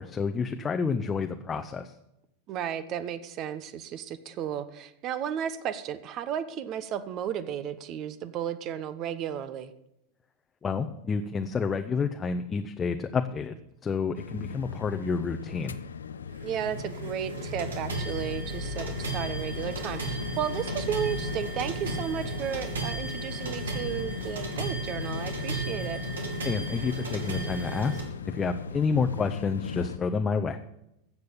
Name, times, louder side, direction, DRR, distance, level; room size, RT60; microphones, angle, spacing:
voice 1, 0.0-1.9 10.6-13.5 13.8-15.8 26.4-30.6, left 5 dB, 20° left, 6 dB, 0.9 m, -29 dB
voice 2, 2.5-9.7 16.4-26.0, right 9 dB, 40° right, 13 dB, 1.1 m, -34 dB
sound 1, 14.1-30.0, left 6 dB, 75° left, 0.6 m, -38 dB
sound 2, 16.3-28.0, right 3 dB, 75° right, 2.7 m, -35 dB
14.5 x 7.9 x 7.0 m, 0.84 s
figure-of-eight pair, 90°, 0 cm